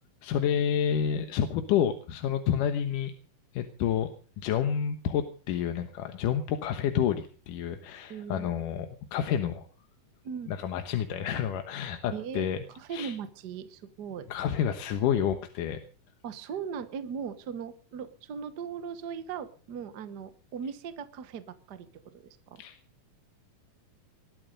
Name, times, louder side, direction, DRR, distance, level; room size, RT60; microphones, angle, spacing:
voice 1, 0.2-3.1 3.5-4.1 4.4-9.7 10.5-12.6 12.9-13.1 14.3-15.8 22.6-22.8, left 9 dB, 80° left, 7 dB, 2.7 m, -29 dB
voice 2, 8.1-8.5 10.2-10.6 12.1-14.3 16.2-22.6, right 7 dB, 70° right, 12 dB, 0.9 m, -39 dB
20.5 x 12.5 x 5.2 m, 0.39 s
omnidirectional pair, 3.7 m